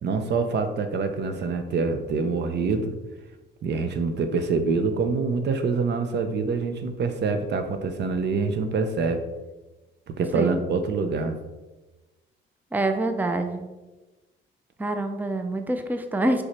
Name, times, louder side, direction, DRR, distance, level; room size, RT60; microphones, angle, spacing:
voice 1, 0.0-2.9 3.6-9.2 10.1-11.4, right 4 dB, 60° right, 8 dB, 0.7 m, -25 dB
voice 2, 12.7-13.7 14.8-16.4, right 2 dB, 10° right, 6 dB, 0.5 m, -26 dB
4.9 x 4.8 x 4.3 m, 1.2 s
cardioid pair, 90°, 20 cm